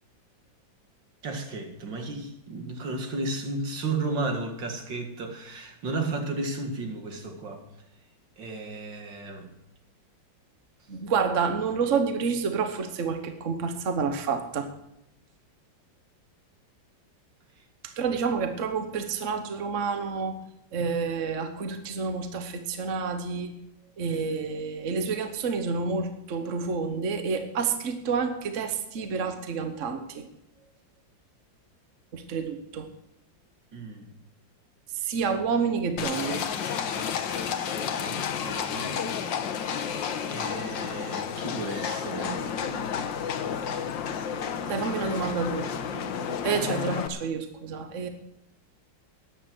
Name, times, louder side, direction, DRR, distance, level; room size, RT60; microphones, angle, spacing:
voice 1, 1.2-7.6 8.4-9.5 33.7-34.1 38.0-39.0 39.4-39.8 40.3-42.4, right 2 dB, 70° right, 4 dB, 2.6 m, -34 dB
voice 2, 10.9-14.7 17.8-20.4 20.7-23.5 24.0-30.3 32.1-32.9 35.0-36.4 44.7-45.7 46.4-48.1, right 5 dB, 45° right, 7 dB, 1.3 m, -29 dB
Livestock farm animals working animals, 36.0-47.1, left 7 dB, 75° left, 1.7 m, -31 dB
13.5 x 10.0 x 6.2 m, 0.82 s
omnidirectional pair, 2.1 m